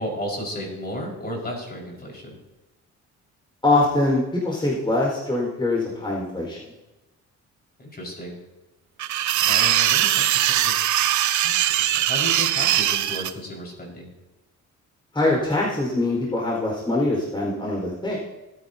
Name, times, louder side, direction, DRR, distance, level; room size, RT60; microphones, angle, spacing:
voice 1, 0.0-2.4 7.8-8.4 9.4-10.9 11.4-14.1, equal, 30° left, -2 dB, 5.0 m, -34 dB
voice 2, 3.6-6.6 15.1-18.2, left 2 dB, 15° left, -3 dB, 4.4 m, -23 dB
sound 1, 9.0-13.3, right 12 dB, 70° right, 0.7 m, -21 dB
19.5 x 9.6 x 2.8 m, 1.0 s
cardioid pair, 90°, 30 cm